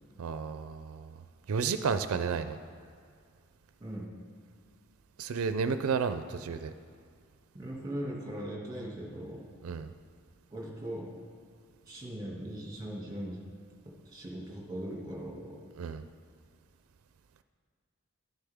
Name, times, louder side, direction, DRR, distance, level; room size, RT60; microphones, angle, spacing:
voice 1, 0.2-1.2 1.5-2.6 5.2-6.7 9.6-9.9 15.8-16.0, right 5 dB, 90° right, 10 dB, 0.4 m, -32 dB
voice 2, 7.5-9.5 10.5-11.1 11.9-13.4 13.8-15.6, right 1 dB, 20° right, -2 dB, 2.2 m, -39 dB
12.0 x 10.0 x 3.6 m, 2.2 s
head